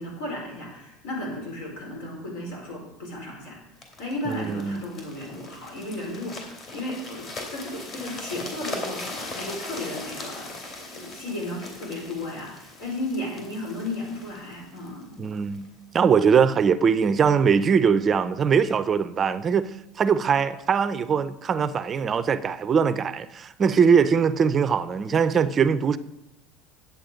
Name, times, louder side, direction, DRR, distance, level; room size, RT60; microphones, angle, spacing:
voice 1, 0.0-3.6 4.0-15.2, left 1 dB, 85° left, 4.7 m, -34 dB
sound 1, 3.8-15.7 16.3-16.4, left 2 dB, 40° left, 2.8 m, -39 dB
voice 2, 4.3-4.8 15.2-15.7 15.9-19.7 20.0-26.0, right 6 dB, 25° right, 0.5 m, -21 dB
10.5 x 8.3 x 5.1 m
cardioid pair, 145°, 0 cm